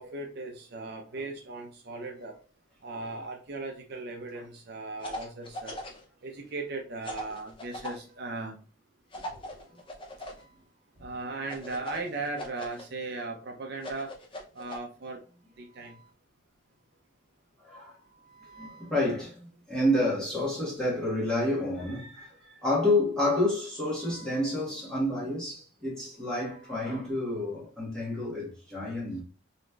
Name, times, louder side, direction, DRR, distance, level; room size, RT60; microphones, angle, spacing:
voice 1, 0.0-2.4 2.8-5.8 6.2-8.6 11.0-14.1 14.5-15.2 15.6-16.0, right 3 dB, 50° right, 0.5 m, -37 dB
sound 1, 5.0-6.0 7.0-8.0 9.1-10.4 11.5-12.8 13.8-14.8, left 1 dB, 25° left, 0.5 m, -39 dB
voice 2, 17.6-17.9 18.4-22.3 22.6-29.2, left 1 dB, 5° left, 1.3 m, -29 dB
4.0 x 3.0 x 2.3 m
head